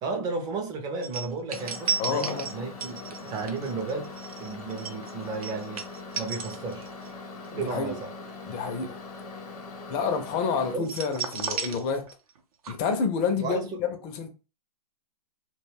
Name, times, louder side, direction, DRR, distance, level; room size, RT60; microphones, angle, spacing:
voice 1, 0.0-5.9 6.2-6.9 7.5-8.1 10.6-10.9 13.4-13.8, right 4 dB, 20° right, 0.5 m, -33 dB
sound 1, 1.0-7.1 7.4-7.7 10.8-12.4 12.6-12.7, right 6 dB, 65° right, 0.6 m, -34 dB
Microwave oven, 1.5-10.8, left 3 dB, 75° left, 0.8 m, -41 dB
voice 2, 2.0-2.5 7.6-8.0 8.5-9.0 9.9-12.1 12.7-14.3, left 5 dB, 30° left, 0.5 m, -29 dB
2.2 x 2.2 x 3.3 m
hypercardioid pair, 130°, 20 cm